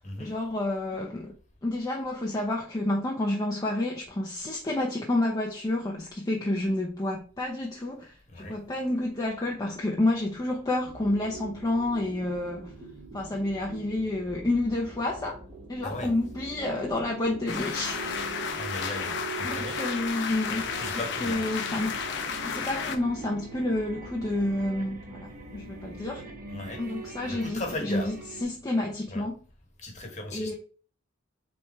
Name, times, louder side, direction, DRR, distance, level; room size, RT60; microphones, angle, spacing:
voice 1, 0.2-1.4 1.6-12.7 13.1-15.4 15.7-18.3 19.4-20.7 21.2-22.0 22.5-26.3 26.8-28.1 28.4-29.4 30.3-30.5, left 1 dB, 20° left, 0.6 m, -29 dB
sound 1, 10.9-28.4, right 4 dB, 40° right, 1.2 m, -43 dB
sound 2, 17.5-23.0, left 6 dB, 60° left, 0.7 m, -33 dB
voice 2, 18.6-19.8 20.7-21.4 26.5-26.8 27.3-28.1 29.1-29.3 29.8-30.5, left 2 dB, 35° left, 1.2 m, -37 dB
3.4 x 3.3 x 4.2 m
head